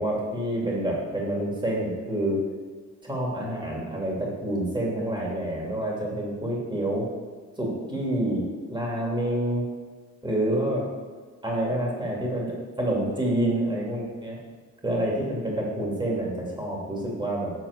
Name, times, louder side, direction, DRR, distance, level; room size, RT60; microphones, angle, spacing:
voice 1, 0.0-2.4 3.0-7.1 7.6-9.6 10.2-10.9 11.4-14.4 14.8-17.5, right 1 dB, 15° right, -3 dB, 2.4 m, -28 dB
7.4 x 4.3 x 6.4 m, 1.4 s
cardioid pair, 90°, 30 cm